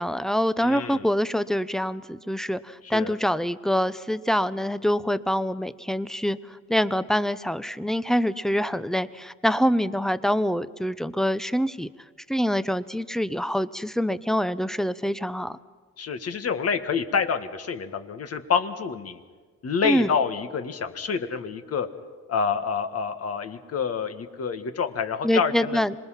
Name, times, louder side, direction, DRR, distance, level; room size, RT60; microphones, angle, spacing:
voice 1, 0.0-11.9 12.3-15.6 19.8-20.1 25.2-25.9, equal, ahead, 14 dB, 0.8 m, -25 dB
voice 2, 0.6-1.1 2.9-3.1 16.0-19.2 19.6-21.9 22.3-25.8, left 6 dB, 50° left, 8 dB, 1.7 m, -27 dB
26.0 x 21.0 x 5.9 m, 1.4 s
cardioid pair, 90°, 30 cm